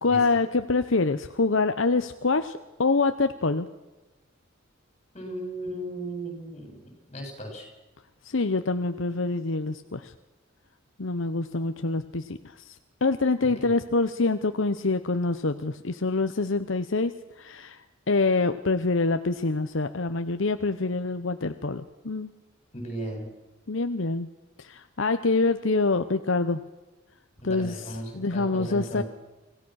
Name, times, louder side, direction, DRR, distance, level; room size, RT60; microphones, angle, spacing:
voice 1, 0.0-3.7 8.2-10.1 11.0-12.8 13.0-17.1 17.4-17.8 18.1-22.3 23.7-24.3 24.6-26.6 27.4-27.8 28.1-29.0, left 3 dB, 70° left, 9 dB, 0.9 m, -25 dB
voice 2, 5.1-7.7 13.6-13.7 22.7-23.3 27.4-29.0, right 1 dB, 30° left, 2 dB, 7.8 m, -36 dB
26.0 x 17.5 x 6.4 m, 1.1 s
head